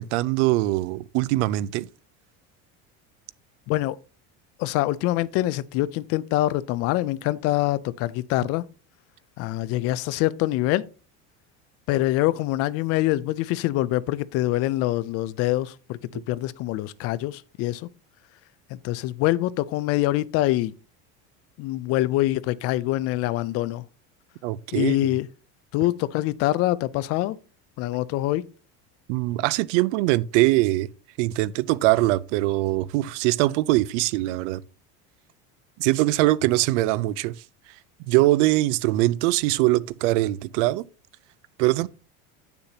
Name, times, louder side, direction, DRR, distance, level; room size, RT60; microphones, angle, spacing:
voice 1, 0.0-1.9 24.4-25.0 29.1-30.9 31.2-34.6 35.8-37.3 38.1-40.9 41.6-41.9, right 18 dB, 80° right, 0.5 m, -22 dB
voice 2, 4.6-8.6 9.4-10.8 11.9-17.9 18.7-20.7 21.6-23.8 24.7-25.3 25.7-27.4 27.8-28.4, left 16 dB, 45° left, 0.4 m, -25 dB
9.5 x 6.9 x 2.8 m
cardioid pair, 160°, 35 cm